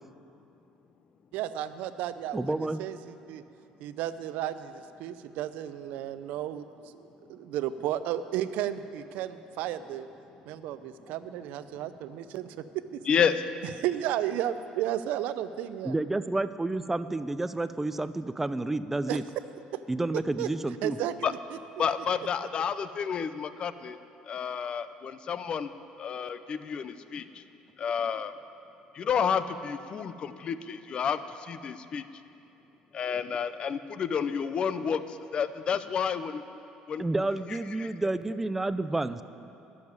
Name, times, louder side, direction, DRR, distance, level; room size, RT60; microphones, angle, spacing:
voice 1, 1.3-3.4 3.8-6.7 6.9-10.1 10.5-12.5 12.9-13.0 13.8-15.9 19.1-19.2 20.4-20.5 20.8-21.4, right 11 dB, 75° right, 12 dB, 0.6 m, -33 dB
voice 2, 2.3-2.8 15.8-19.2 19.9-21.0 37.0-39.2, right 2 dB, 10° right, 13 dB, 0.4 m, -30 dB
voice 3, 13.1-13.4 21.2-21.3 21.8-24.0 24.3-25.7 26.0-27.4 27.8-28.3 28.9-32.0 32.9-36.4 36.9-37.1 37.5-37.9, left 7 dB, 40° left, 13 dB, 0.6 m, -30 dB
12.0 x 7.2 x 9.6 m, 2.8 s
cardioid pair, 125°, 3 cm